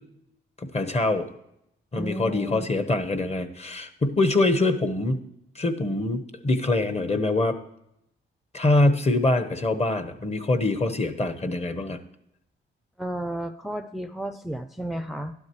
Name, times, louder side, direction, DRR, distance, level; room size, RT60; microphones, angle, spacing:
voice 1, 0.6-1.3 1.9-5.2 5.5-7.6 8.5-12.0, left 2 dB, 30° left, 8 dB, 1.1 m, -24 dB
voice 2, 1.9-2.6 13.0-15.3, right 1 dB, ahead, 9 dB, 0.5 m, -32 dB
12.5 x 11.5 x 3.1 m, 0.80 s
cardioid pair, 80°, 21 cm